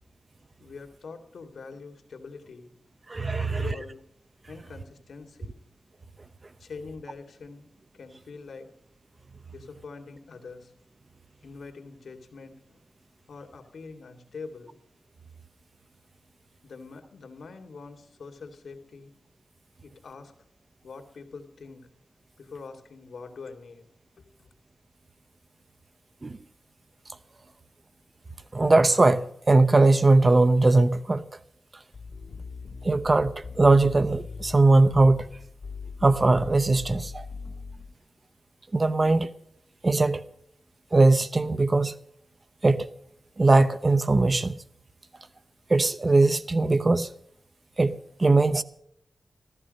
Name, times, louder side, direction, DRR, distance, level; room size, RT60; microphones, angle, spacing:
voice 1, 0.6-2.7 3.3-4.0 4.5-5.6 6.6-7.6 7.9-8.7 9.5-10.7 11.4-12.8 13.3-14.8 16.6-19.1 19.8-20.3 20.8-21.9 22.4-23.9 24.2-24.5, left 4 dB, 80° left, 2.6 m, -44 dB
voice 2, 3.1-3.7 26.2-26.4 28.5-31.2 32.8-35.3 36.0-37.3 38.7-39.3 39.8-40.2 40.9-41.9 42.6-42.9 43.4-44.6 45.7-47.1 47.8-47.9 48.2-48.6, right 2 dB, 25° right, 0.8 m, -20 dB
sound 1, 31.9-37.9, left 4 dB, 60° left, 2.6 m, -40 dB
15.0 x 14.5 x 5.4 m
wide cardioid pair, 180°, 0 cm